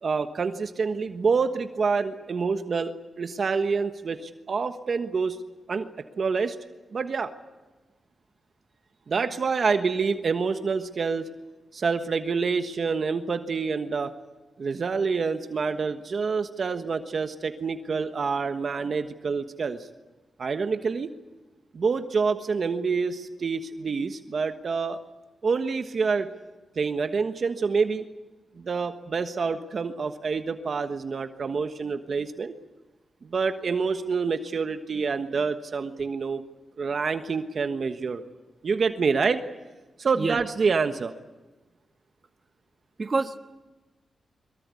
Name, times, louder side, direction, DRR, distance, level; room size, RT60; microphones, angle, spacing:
voice 1, 0.0-5.4 5.7-5.9 6.2-6.6 6.9-7.3 9.1-11.2 11.7-14.1 14.6-19.8 20.4-21.1 21.7-25.0 25.4-26.3 26.7-28.0 28.6-32.5 33.2-36.4 36.8-38.2 38.6-39.4 40.0-41.1, right 5 dB, 55° right, 8 dB, 1.3 m, -27 dB
voice 2, 43.0-43.4, right 3 dB, 40° right, 7 dB, 1.4 m, -27 dB
23.5 x 23.0 x 8.4 m, 1.2 s
cardioid pair, 85°, 0 cm